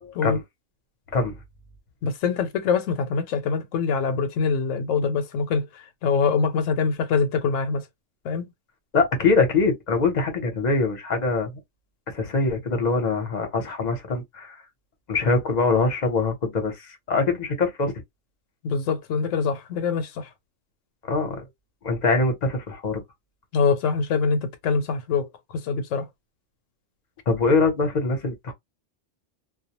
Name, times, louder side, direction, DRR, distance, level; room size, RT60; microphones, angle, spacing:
voice 1, 0.0-0.4 1.1-1.3 8.9-11.6 12.1-14.6 15.1-17.9 21.1-21.4 21.8-23.0 27.3-28.5, left 3 dB, 40° left, 0.8 m, -23 dB
voice 2, 2.0-5.7 6.0-7.8 8.2-8.5 18.6-20.3 23.5-25.3 25.6-26.1, left 5 dB, 80° left, 1.0 m, -24 dB
2.3 x 2.1 x 2.8 m
omnidirectional pair, 1.3 m